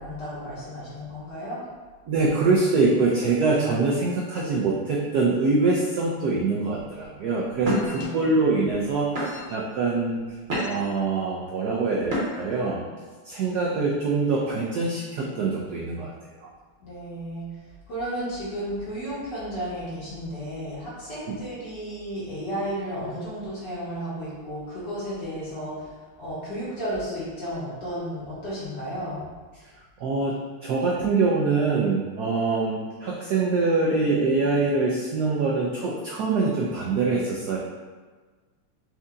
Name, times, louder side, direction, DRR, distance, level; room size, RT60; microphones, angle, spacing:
voice 1, 0.0-1.6 7.7-8.3 16.8-17.5 17.9-29.3, equal, 55° left, -9 dB, 2.1 m, -33 dB
voice 2, 2.1-10.2 10.6-12.8 13.2-16.1 16.4-16.5 21.3-21.4 30.0-30.4 30.6-37.6, right 3 dB, 80° right, -3 dB, 0.8 m, -24 dB
sound 1, 6.8-7.0 7.6-8.0 8.7-8.8 9.2-9.6 10.2-11.0 12.0-12.6, equal, 40° right, 1.0 m, -29 dB
4.6 x 2.7 x 3.6 m, 1.4 s
omnidirectional pair, 2.3 m